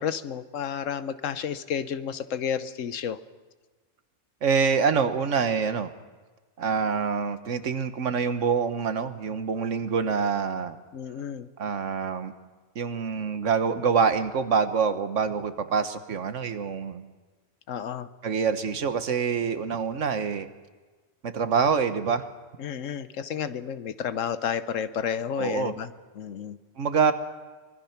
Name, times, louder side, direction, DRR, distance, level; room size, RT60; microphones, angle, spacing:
voice 1, 0.0-3.2 10.9-11.5 17.7-18.1 22.6-26.6, left 8 dB, 90° left, 13 dB, 1.2 m, -31 dB
voice 2, 4.4-5.9 6.6-10.8 11.6-12.3 12.7-17.1 18.2-20.5 21.2-22.3 25.4-25.7 26.8-27.1, right 6 dB, 75° right, 10 dB, 1.5 m, -26 dB
24.5 x 21.0 x 5.9 m, 1.3 s
omnidirectional pair, 1.3 m